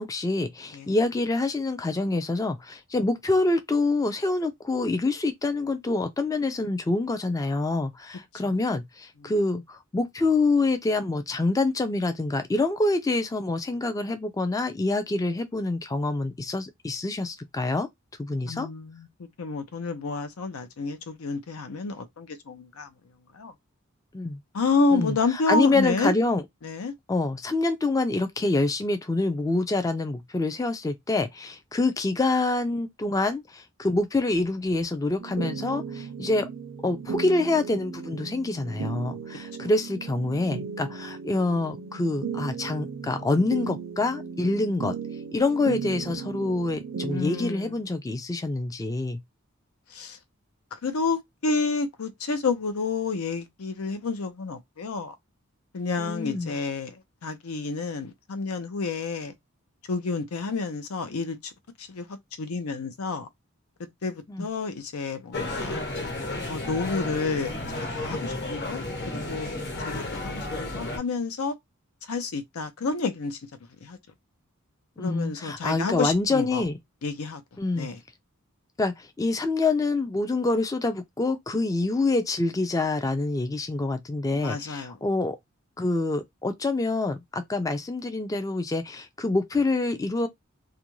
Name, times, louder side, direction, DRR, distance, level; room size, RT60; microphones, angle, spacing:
voice 1, 0.0-17.9 18.2-18.7 24.1-24.4 24.9-26.4 27.1-36.5 36.8-44.9 45.3-49.2 56.0-56.5 64.3-64.5 75.0-76.8 77.6-77.9 78.8-85.4 85.8-90.3, left 2 dB, 15° left, 0.3 m, -26 dB
voice 2, 18.4-19.1 19.4-22.9 23.4-23.5 24.5-26.1 26.6-26.9 39.6-39.7 47.1-47.7 49.9-50.2 50.8-55.1 55.7-56.9 57.2-59.3 59.9-61.4 61.9-62.1 62.4-63.3 64.0-65.8 66.5-69.5 69.8-71.5 72.1-73.4 73.8-74.0 75.0-76.6 77.0-77.4 77.8-78.0 84.3-85.0, left 4 dB, 90° left, 0.6 m, -29 dB
sound 1, 35.2-47.5, right 6 dB, 60° right, 0.4 m, -36 dB
sound 2, 65.3-71.0, left 2 dB, 50° left, 1.1 m, -32 dB
2.4 x 2.2 x 3.0 m
head